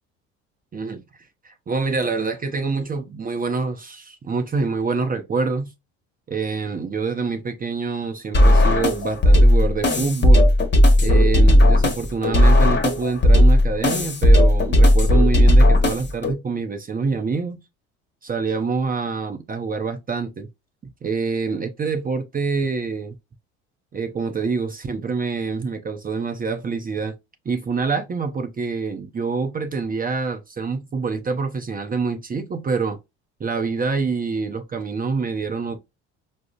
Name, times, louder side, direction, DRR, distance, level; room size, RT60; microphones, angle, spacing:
voice 1, 1.4-5.7 6.3-10.5 11.0-17.6 18.2-20.5 21.0-23.2 23.9-27.1 27.5-33.0 33.4-35.8, right 4 dB, 25° right, 0.6 m, -26 dB
sound 1, 8.3-16.3, left 1 dB, 30° left, 1.0 m, -15 dB
4.8 x 2.1 x 2.3 m
hypercardioid pair, 60°, 35 cm